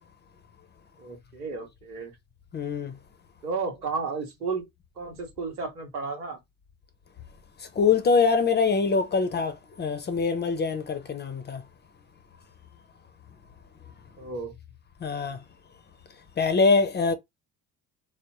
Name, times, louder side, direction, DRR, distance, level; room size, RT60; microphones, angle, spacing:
voice 1, 1.0-2.1 3.4-4.6 5.0-6.4 14.2-14.5, right 4 dB, 85° right, 1.2 m, -33 dB
voice 2, 2.5-2.9 7.8-11.6 15.0-15.4 16.4-17.1, left 4 dB, 25° left, 0.6 m, -24 dB
3.4 x 2.1 x 2.9 m
figure-of-eight pair, 55°, 45 cm